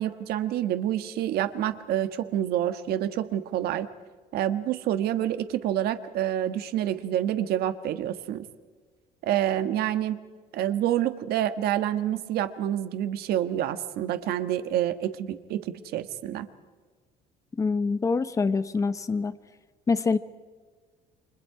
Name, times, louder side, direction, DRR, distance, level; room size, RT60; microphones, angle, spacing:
voice 1, 0.0-3.9 4.3-8.5 9.2-10.2 10.5-16.5, right 11 dB, 60° right, 10 dB, 1.4 m, -28 dB
voice 2, 17.6-19.3 19.9-20.2, left 4 dB, 20° left, 12 dB, 0.9 m, -25 dB
29.5 x 25.0 x 4.9 m, 1.5 s
cardioid pair, 165°, 18 cm